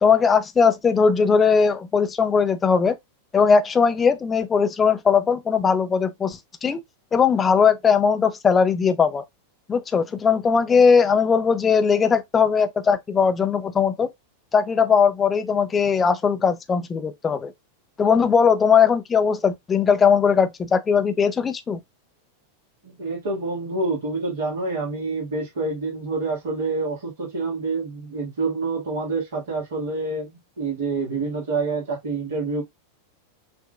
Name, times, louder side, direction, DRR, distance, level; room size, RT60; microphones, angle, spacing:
voice 1, 0.0-3.0 3.3-6.8 7.1-9.2 9.7-14.1 14.5-17.5 18.0-21.8, left 6 dB, 20° left, 0.6 m, -19 dB
voice 2, 22.8-32.6, right 3 dB, 65° right, 1.9 m, -27 dB
5.7 x 2.6 x 2.4 m
figure-of-eight pair, 90°, 0 cm